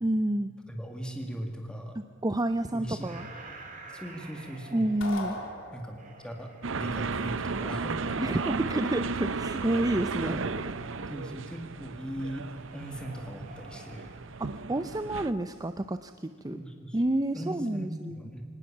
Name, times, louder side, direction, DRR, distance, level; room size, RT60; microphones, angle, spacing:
voice 1, 0.0-0.5 2.2-3.3 4.7-5.4 8.2-10.4 14.4-16.6 16.9-18.1, right 1 dB, 20° right, 10 dB, 0.6 m, -29 dB
voice 2, 0.7-2.0 2.7-3.1 3.9-4.9 5.7-6.0 6.2-6.5 6.8-8.0 10.2-10.5 11.1-12.5 12.7-14.1 16.5-17.0 17.3-18.4, equal, 5° left, 3 dB, 2.0 m, -39 dB
sound 1, 3.0-6.8 7.4-8.8 10.1-11.1 12.5-14.2, right 2 dB, 40° right, 3.3 m, -48 dB
sound 2, 5.0-6.3, left 2 dB, 80° left, 3.6 m, -38 dB
sound 3, 6.6-15.3, right 4 dB, 75° right, 0.8 m, -34 dB
24.0 x 19.0 x 7.3 m, 2.2 s
head